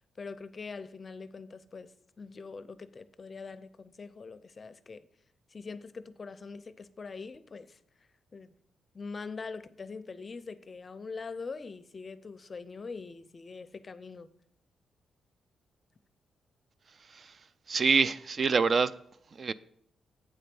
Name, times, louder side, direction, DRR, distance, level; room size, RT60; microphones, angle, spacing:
voice 1, 0.2-5.1 5.5-8.5 8.9-14.3, left 4 dB, 35° left, 0.5 m, -43 dB
voice 2, 17.7-18.9 19.4-19.5, right 5 dB, 45° right, 0.3 m, -25 dB
8.6 x 4.3 x 6.8 m
cardioid pair, 105°, 0 cm